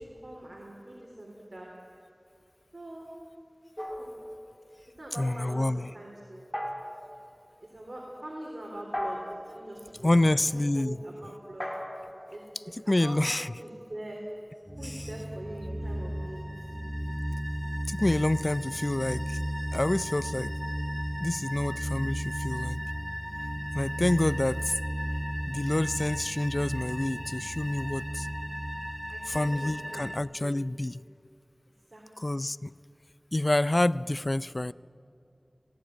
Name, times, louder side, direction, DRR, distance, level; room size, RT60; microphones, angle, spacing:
voice 1, 0.0-1.7 2.7-3.1 4.0-4.1 5.0-6.4 7.6-9.2 9.5-11.7 12.3-13.2 13.6-14.2 14.8-16.4 29.1-30.0 30.4-30.6 31.9-32.3, right 1 dB, 70° right, -2 dB, 3.5 m, -43 dB
sound 1, 3.8-4.9 6.5-7.2 8.9-9.6 11.6-13.4, equal, 10° left, 4.0 m, -38 dB
voice 2, 5.1-5.9 10.0-11.0 12.7-13.5 14.8-15.1 17.9-19.4 19.7-20.5 21.2-22.8 23.7-24.8 25.5-28.3 29.2-31.0 32.2-32.7 33.3-34.7, left 1 dB, 50° left, 18 dB, 0.4 m, -28 dB
sound 2, 14.7-30.2, equal, 5° right, 1.2 m, -34 dB
18.0 x 17.0 x 10.0 m, 2.6 s
wide cardioid pair, 40°, 0 cm